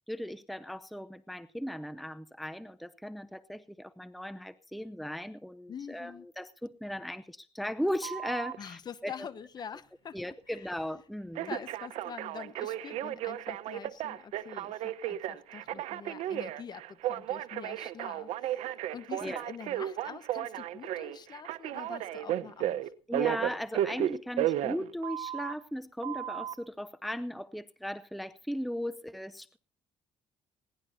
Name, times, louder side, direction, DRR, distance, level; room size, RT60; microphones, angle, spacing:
voice 1, 0.1-9.1 10.1-11.6 19.2-19.4 23.1-29.6, equal, ahead, 0.6 m, -37 dB
voice 2, 5.7-6.3 8.6-10.2 10.5-10.8 11.4-22.9, left 7 dB, 40° left, 1.1 m, -45 dB
Telephone, 8.0-8.6 11.3-25.5 26.0-26.5, right 12 dB, 80° right, 1.0 m, -34 dB
21.0 x 17.5 x 2.7 m
cardioid pair, 130°, 11 cm